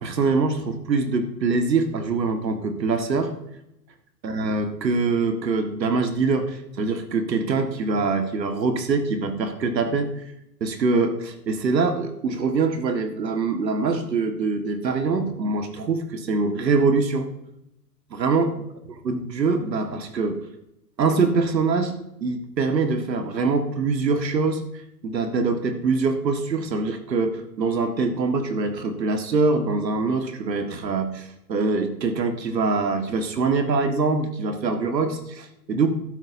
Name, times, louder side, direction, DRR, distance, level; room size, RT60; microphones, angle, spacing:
voice 1, 0.0-3.3 4.2-10.1 10.6-17.3 18.1-18.5 19.0-20.4 21.0-21.9 22.2-35.9, right 4 dB, 80° right, 7 dB, 1.8 m, -24 dB
12.5 x 12.5 x 2.7 m, 0.85 s
hypercardioid pair, 120°, 49 cm